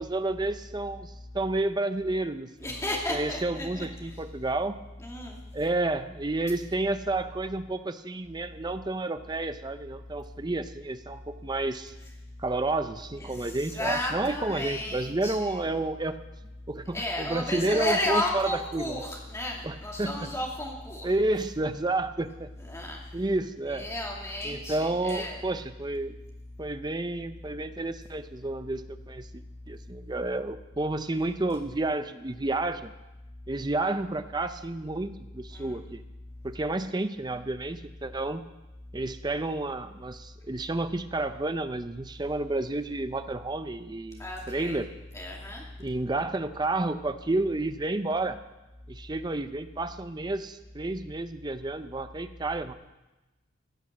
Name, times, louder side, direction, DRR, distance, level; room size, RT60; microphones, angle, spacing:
voice 1, 0.0-2.8 3.1-4.8 5.5-11.9 12.4-16.2 16.7-19.0 19.6-20.1 21.0-22.5 23.1-23.9 24.4-26.2 26.6-32.9 33.5-36.0 36.4-38.4 38.9-44.9 45.8-48.4 48.9-52.7, right 2 dB, 20° right, 10 dB, 0.5 m, -30 dB
voice 2, 2.6-4.1 5.0-5.4 13.2-15.6 16.9-21.1 22.6-23.0 23.7-25.4 35.5-35.8 44.2-44.8 45.1-45.6, left 1 dB, 15° left, -2 dB, 2.5 m, -33 dB
15.5 x 8.7 x 7.3 m, 1.0 s
head